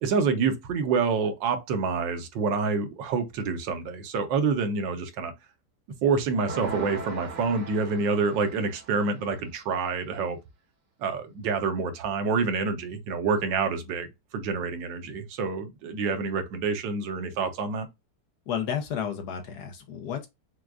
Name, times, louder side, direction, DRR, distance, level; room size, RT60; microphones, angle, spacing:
voice 1, 0.0-5.3 6.0-10.4 11.0-17.9, right 4 dB, 85° right, 1.5 m, -27 dB
sound 1, 6.5-9.2, right 4 dB, 50° right, 0.5 m, -39 dB
voice 2, 18.5-20.3, left 8 dB, 65° left, 1.2 m, -32 dB
6.1 x 2.3 x 2.3 m
omnidirectional pair, 2.0 m